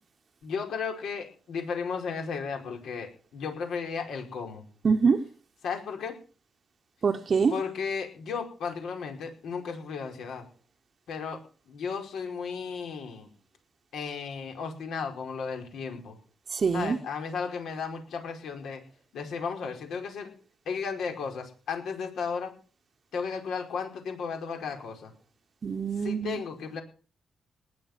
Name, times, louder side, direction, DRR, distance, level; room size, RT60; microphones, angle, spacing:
voice 1, 0.4-4.6 5.6-6.1 7.5-10.4 11.1-11.4 11.7-13.3 13.9-16.2 16.7-18.8 19.1-20.3 20.6-22.5 23.1-25.1 26.0-26.8, left 5 dB, 75° left, 5.0 m, -34 dB
voice 2, 4.8-5.2 7.0-7.5 16.5-17.0 25.6-26.4, right 5 dB, 40° right, 0.9 m, -24 dB
19.5 x 8.1 x 7.4 m
cardioid pair, 120°, 0 cm